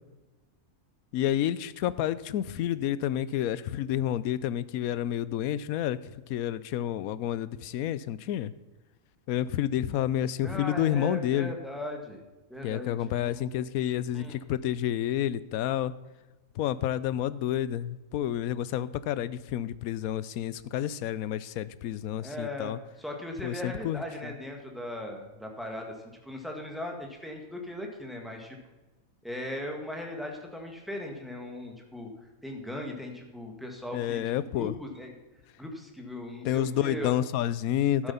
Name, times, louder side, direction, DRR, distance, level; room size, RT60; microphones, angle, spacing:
voice 1, 1.1-6.0 6.3-8.5 9.3-11.5 12.6-15.9 16.6-22.8 23.4-24.3 33.9-34.7 36.4-38.1, left 11 dB, 85° left, 17 dB, 1.0 m, -29 dB
voice 2, 10.4-12.2 12.5-13.5 14.1-14.4 22.2-25.9 26.2-28.6 29.2-32.1 32.4-34.2 34.5-35.1 35.6-37.1 38.0-38.1, left 1 dB, ahead, 1 dB, 1.9 m, -38 dB
12.0 x 8.0 x 5.6 m, 1.1 s
omnidirectional pair, 1.5 m